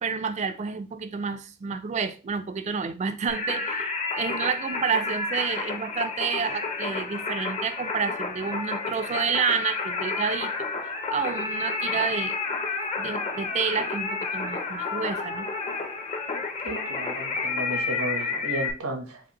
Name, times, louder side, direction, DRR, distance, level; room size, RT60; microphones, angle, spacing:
voice 1, 0.0-12.4 13.0-15.5, right 6 dB, 30° right, 0.3 m, -29 dB
Singing, 3.3-18.7, left 4 dB, 30° left, 0.6 m, -30 dB
voice 2, 16.6-19.2, right 1 dB, 90° right, 0.9 m, -33 dB
4.9 x 2.5 x 2.9 m
head